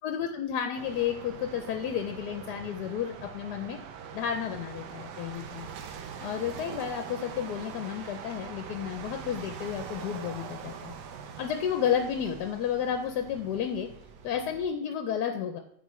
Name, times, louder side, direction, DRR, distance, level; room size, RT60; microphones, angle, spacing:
voice 1, 0.0-3.8 4.1-5.7 6.2-10.9 11.4-13.9 14.2-15.6, left 8 dB, 75° left, 5 dB, 1.1 m, -31 dB
sound 1, 0.7-14.7, right 7 dB, 75° right, 1.3 m, -43 dB
9.2 x 4.6 x 3.1 m, 0.73 s
omnidirectional pair, 1.9 m